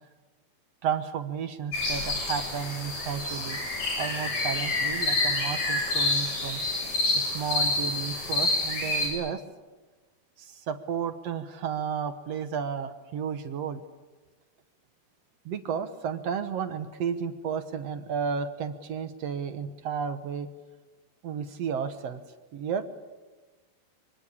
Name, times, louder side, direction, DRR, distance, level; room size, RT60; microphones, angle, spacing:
voice 1, 0.8-3.6 4.0-6.6 7.2-9.4 10.4-13.8 15.5-20.5 21.2-22.2 22.5-22.9, right 7 dB, 60° right, 9 dB, 1.7 m, -32 dB
sound 1, 1.7-9.1, left 2 dB, 50° left, 8.8 m, -28 dB
25.0 x 25.0 x 8.6 m, 1.2 s
omnidirectional pair, 4.3 m